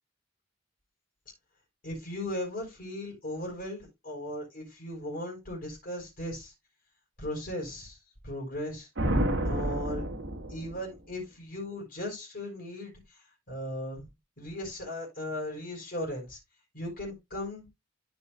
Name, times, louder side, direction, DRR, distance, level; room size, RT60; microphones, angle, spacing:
voice 1, 1.8-6.5 7.2-8.0 8.2-8.9 9.4-10.0 10.5-14.1 14.4-16.4 16.7-17.7, left 1 dB, 50° left, 4.5 m, -37 dB
sound 1, 9.0-10.9, right 1 dB, 75° right, 1.8 m, -29 dB
14.0 x 5.5 x 2.3 m
head